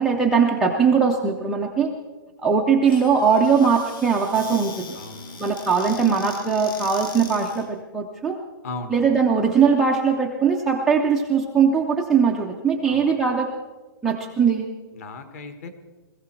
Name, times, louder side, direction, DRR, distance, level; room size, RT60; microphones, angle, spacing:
voice 1, 0.0-1.9 2.4-5.0 5.4-8.4 8.9-13.5 14.0-14.7, right 6 dB, ahead, -3 dB, 0.4 m, -20 dB
Squeak / Cupboard open or close, 2.8-7.7, left 4 dB, 65° left, 2.7 m, -40 dB
voice 2, 4.9-5.4 8.6-9.1 12.9-13.1 14.9-15.7, left 3 dB, 40° left, 9 dB, 1.4 m, -36 dB
21.0 x 15.0 x 4.5 m, 1.2 s
hypercardioid pair, 175°, 13 cm